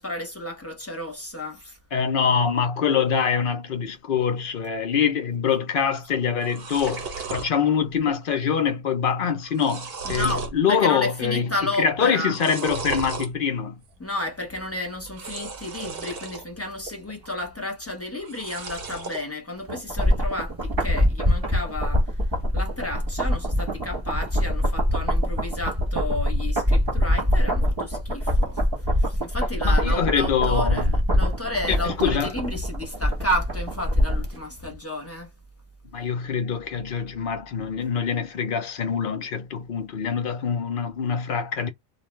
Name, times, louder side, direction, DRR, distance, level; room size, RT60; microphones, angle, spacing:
voice 1, 0.0-1.8 10.0-12.4 14.0-22.2 22.5-28.6 29.0-35.3, left 1 dB, 15° left, 0.7 m, -32 dB
voice 2, 1.9-11.5 11.8-13.8 29.6-30.9 31.7-32.3 35.9-41.7, left 7 dB, 55° left, 0.6 m, -24 dB
sound 1, 6.0-6.1 6.3-7.5 8.0-8.4 8.6-8.7 9.3-10.6 11.0-11.5 12.2-13.3 15.1-16.4 16.8-17.5 18.2-19.2, right 4 dB, 50° right, 0.9 m, -34 dB
sound 2, 19.7-34.4 34.7-34.8, equal, 20° right, 0.9 m, -24 dB
2.4 x 2.3 x 3.1 m
omnidirectional pair, 1.4 m